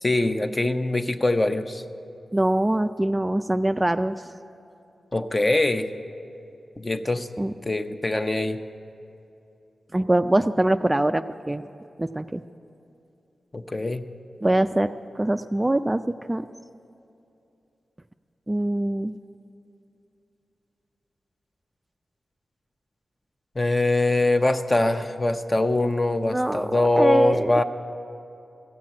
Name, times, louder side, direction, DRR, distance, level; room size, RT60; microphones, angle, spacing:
voice 1, 0.0-1.8 5.1-5.9 6.8-7.3 7.7-8.6 13.5-14.0 23.6-27.6, left 2 dB, 30° left, 8 dB, 0.7 m, -23 dB
voice 2, 2.3-4.2 7.4-7.5 9.9-11.6 12.0-12.4 14.4-14.9 15.2-16.0 16.3-16.4 18.5-19.1 26.3-26.7 26.9-27.5, right 1 dB, 20° right, 9 dB, 0.3 m, -23 dB
15.0 x 7.4 x 9.5 m, 2.7 s
cardioid pair, 65°, 0 cm